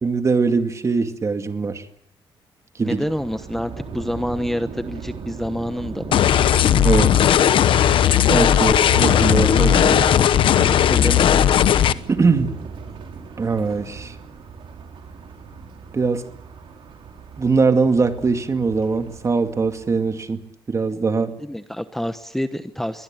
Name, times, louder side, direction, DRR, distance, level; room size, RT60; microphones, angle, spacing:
voice 1, 0.0-1.8 2.8-3.0 6.8-7.2 8.3-10.1 12.1-12.5 13.4-14.1 15.9-16.3 17.4-20.4 20.7-21.4, right 4 dB, 35° right, 7 dB, 2.3 m, -21 dB
voice 2, 2.8-6.2 10.9-11.4 21.4-23.0, equal, 5° left, 10 dB, 1.1 m, -27 dB
Thunder, 2.8-20.2, right 5 dB, 75° right, 4.9 m, -36 dB
sound 1, 6.1-11.9, left 10 dB, 70° left, 1.0 m, -16 dB
23.0 x 19.5 x 8.9 m, 0.74 s
cardioid pair, 105°, 9 cm